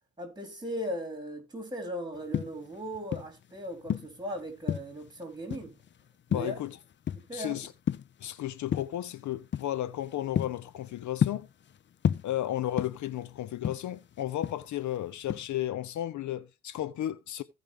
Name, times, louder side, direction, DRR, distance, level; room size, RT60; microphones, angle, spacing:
voice 1, 0.2-5.8 6.3-6.5 7.1-7.6, equal, 15° right, 4.2 m, -38 dB
sound 1, 2.1-3.4 3.8-5.1 5.5-5.9 6.3-7.4 7.7-8.3 8.7-9.0 9.5-9.7 10.1-11.7 12.0-13.2 13.5-15.0 15.3-15.6, left 9 dB, 40° left, 0.5 m, -31 dB
voice 2, 6.3-6.8 7.3-7.7 8.2-11.5 12.2-17.4, left 13 dB, 70° left, 0.8 m, -34 dB
16.0 x 5.4 x 3.6 m
cardioid pair, 90°, 30 cm